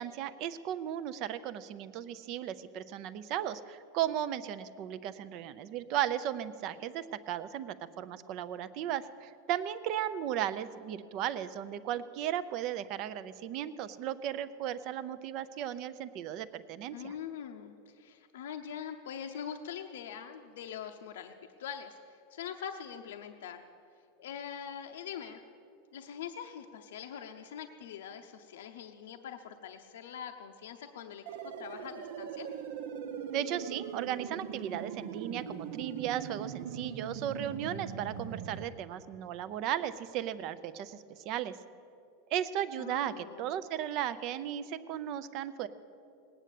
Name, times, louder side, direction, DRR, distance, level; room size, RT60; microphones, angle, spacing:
voice 1, 0.0-17.1 33.3-41.6 42.3-45.7, right 11 dB, 35° right, 14 dB, 0.5 m, -36 dB
voice 2, 16.9-23.6 24.2-25.4 25.9-32.5 42.8-43.5, left 8 dB, 85° left, 5 dB, 0.8 m, -43 dB
sound 1, 31.3-38.7, right 7 dB, 65° right, 1.0 m, -41 dB
18.5 x 8.9 x 8.3 m, 2.6 s
supercardioid pair, 175°, 0 cm